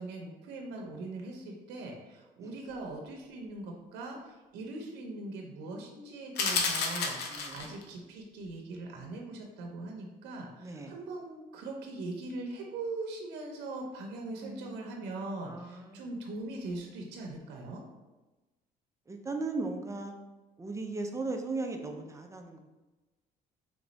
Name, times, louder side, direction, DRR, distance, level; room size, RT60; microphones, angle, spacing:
voice 1, 0.0-17.8, right 2 dB, 85° right, 1 dB, 0.7 m, -41 dB
sound 1, 6.4-7.8, left 4 dB, 75° left, 0.7 m, -31 dB
voice 2, 7.3-7.7 10.6-10.9 14.4-14.9 15.5-16.1 19.1-20.1 20.6-22.6, right 3 dB, 20° right, 4 dB, 0.5 m, -37 dB
3.5 x 3.1 x 3.9 m, 1.1 s
cardioid pair, 110°, 17 cm